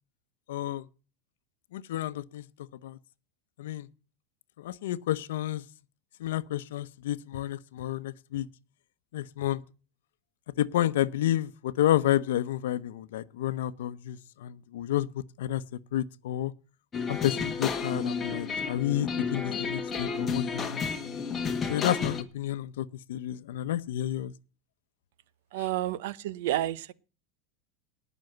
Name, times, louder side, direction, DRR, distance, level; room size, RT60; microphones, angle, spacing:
voice 1, 0.5-0.8 1.7-2.4 2.8-3.0 3.6-3.9 4.6-5.6 6.2-8.5 9.1-9.6 10.6-15.6 15.9-16.5 17.1-20.8 21.7-24.3, left 12 dB, 90° left, 0.8 m, -30 dB
sound 1, 16.9-22.2, left 5 dB, 20° left, 1.6 m, -31 dB
voice 2, 25.5-26.9, right 14 dB, 75° right, 0.8 m, -30 dB
18.5 x 6.2 x 7.8 m
supercardioid pair, 145°, 0 cm